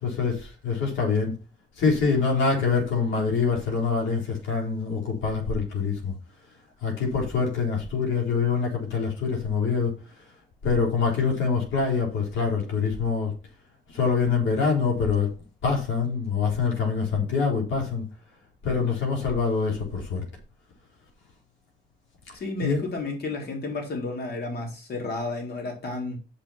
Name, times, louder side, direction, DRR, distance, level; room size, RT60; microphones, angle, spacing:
voice 1, 0.0-1.3 1.8-6.1 6.8-10.2 10.6-13.3 13.9-15.3 15.6-18.0 18.6-20.2 22.6-22.8, left 5 dB, 75° left, 4.2 m, -25 dB
voice 2, 22.3-26.2, left 3 dB, 55° left, 3.9 m, -32 dB
6.7 x 6.1 x 5.8 m
cardioid pair, 90°, 20 cm